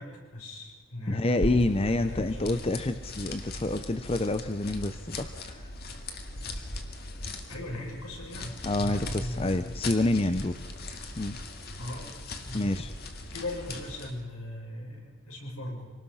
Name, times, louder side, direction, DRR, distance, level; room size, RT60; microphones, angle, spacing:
voice 1, 0.0-2.6 7.5-9.7 10.2-10.5 11.8-12.2 12.4-12.8 13.3-15.9, left 1 dB, 80° left, -1 dB, 6.9 m, -39 dB
voice 2, 1.1-5.6 8.6-10.5 11.2-11.4 12.5-12.9, left 2 dB, 25° left, 10 dB, 0.6 m, -28 dB
sound 1, 1.3-14.2, left 2 dB, 45° left, 2.0 m, -39 dB
25.5 x 19.5 x 5.7 m, 1.5 s
head